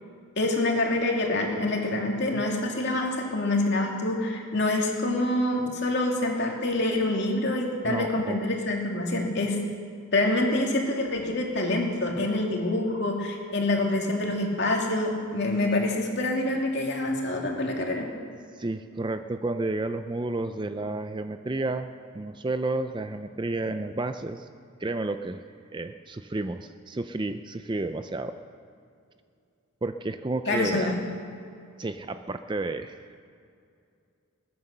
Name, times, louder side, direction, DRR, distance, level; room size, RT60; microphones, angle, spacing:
voice 1, 0.4-9.6 10.1-18.1 30.5-30.9, left 2 dB, 50° left, 0 dB, 2.5 m, -26 dB
voice 2, 7.8-8.4 18.5-24.5 24.8-25.4 25.7-28.3 29.8-30.9 31.8-33.0, right 2 dB, 20° right, 9 dB, 0.4 m, -31 dB
21.5 x 9.5 x 6.7 m, 2.4 s
head